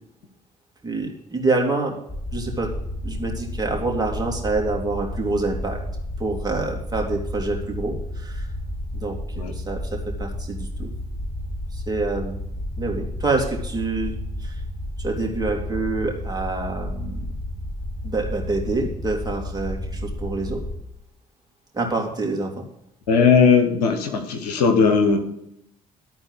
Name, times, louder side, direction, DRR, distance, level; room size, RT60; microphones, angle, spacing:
voice 1, 0.8-2.0 2.3-2.7 3.0-5.8 6.2-8.5 8.9-10.9 11.7-12.4 12.8-14.6 15.0-17.3 18.0-20.6 21.7-22.5, right 3 dB, 20° right, 0 dB, 2.9 m, -27 dB
sound 1, 2.1-20.8, left 1 dB, 5° right, 3.1 m, -31 dB
voice 2, 23.1-25.2, left 5 dB, 85° left, 5 dB, 1.2 m, -18 dB
12.5 x 4.3 x 8.0 m, 0.79 s
hypercardioid pair, 50°, 20 cm